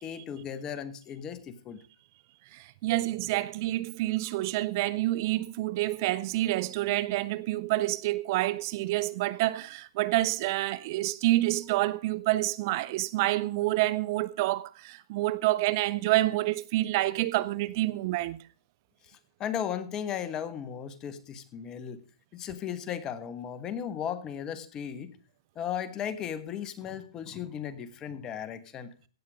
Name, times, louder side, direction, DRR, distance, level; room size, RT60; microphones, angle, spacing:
voice 1, 0.0-1.8 19.0-22.0 22.3-25.2 25.5-28.9, left 9 dB, 25° left, 1.4 m, -36 dB
voice 2, 2.5-18.4, right 17 dB, 45° right, 0.6 m, -28 dB
16.5 x 8.1 x 5.0 m
hypercardioid pair, 135°, 3 cm